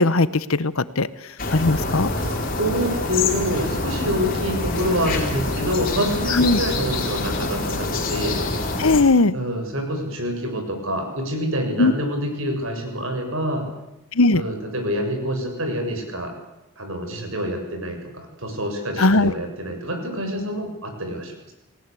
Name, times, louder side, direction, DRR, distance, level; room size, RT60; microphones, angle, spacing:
voice 1, 0.0-2.1 6.3-6.6 8.8-9.4 11.8-11.9 14.1-14.4 19.0-19.3, left 2 dB, 70° left, 16 dB, 1.1 m, -18 dB
sound 1, 1.4-9.0, left 2 dB, 40° left, 4.5 m, -26 dB
voice 2, 1.8-8.4 9.3-13.6 14.3-16.3 16.8-21.5, equal, 65° right, 4 dB, 7.2 m, -27 dB
30.0 x 18.5 x 8.5 m, 0.89 s
head